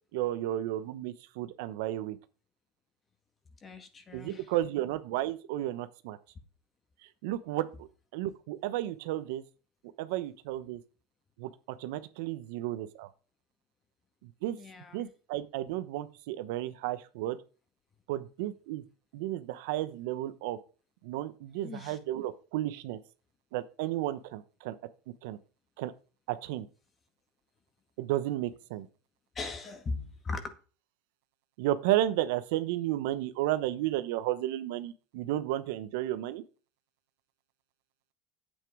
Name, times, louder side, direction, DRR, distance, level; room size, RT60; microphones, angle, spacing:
voice 1, 0.1-2.2 4.1-6.2 7.2-7.9 8.1-9.4 10.0-10.8 11.4-11.5 11.8-13.1 14.2-14.6 14.9-17.4 18.1-18.8 19.1-20.6 21.0-23.0 23.5-24.8 25.2-25.4 25.8-25.9 26.3-26.7 28.0-28.9 31.6-36.4, right 14 dB, 75° right, 0.9 m, -33 dB
voice 2, 3.6-4.5 14.6-15.0 21.6-22.0 29.4-30.5, left 3 dB, 25° left, 1.9 m, -39 dB
9.2 x 8.4 x 4.9 m
supercardioid pair, 120°, 0 cm